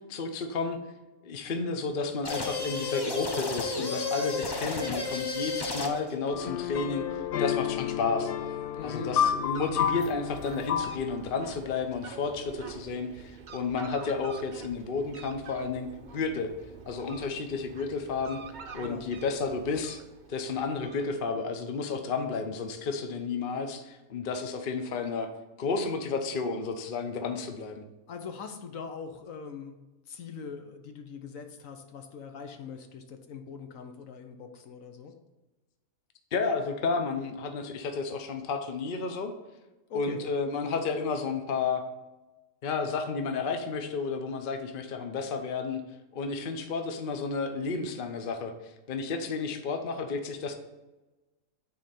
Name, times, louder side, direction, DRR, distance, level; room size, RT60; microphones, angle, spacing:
voice 1, 0.1-0.8 1.2-7.0 7.4-8.3 8.8-15.9 16.1-16.5 16.9-18.4 18.7-20.0 20.3-25.3 25.6-27.8 36.3-39.3 39.9-41.8 42.6-45.8 46.1-48.5 48.9-50.5, left 4 dB, 45° left, 6 dB, 0.8 m, -32 dB
sound 1, 2.2-6.1, left 3 dB, 30° left, 0.4 m, -32 dB
sound 2, 6.3-11.3, left 9 dB, 85° left, 0.5 m, -30 dB
Fowl, 8.5-21.5, right 5 dB, 45° right, 0.6 m, -47 dB
voice 2, 8.7-9.1 18.8-19.0 19.4-19.6 28.1-29.8 30.1-35.1 39.9-40.2, left 5 dB, 70° left, 6 dB, 1.2 m, -42 dB
9.4 x 4.2 x 4.2 m, 1.1 s
omnidirectional pair, 1.5 m